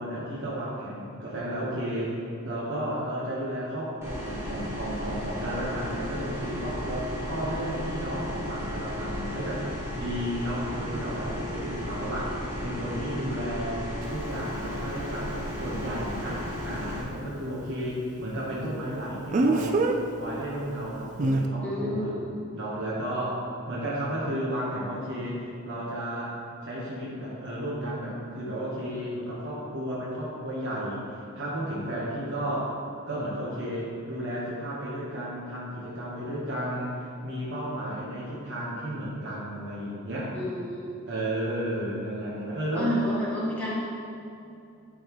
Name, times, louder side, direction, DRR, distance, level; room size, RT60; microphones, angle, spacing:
voice 1, 0.0-9.6 10.0-12.3 12.6-13.8 14.1-19.8 20.2-22.1 22.5-26.3 26.6-31.1 31.3-32.7 33.1-40.3 41.1-42.9, right 1 dB, 55° right, -7 dB, 1.1 m, -33 dB
sound 1, 4.0-17.0, equal, 10° right, 1.0 m, -34 dB
Speech, 14.0-14.1 19.3-20.0 21.2-21.4, right 2 dB, 35° right, 0.3 m, -23 dB
voice 2, 21.6-22.3 40.3-40.9 42.8-43.8, equal, 5° left, -9 dB, 1.5 m, -30 dB
11.5 x 4.0 x 3.0 m, 2.6 s
head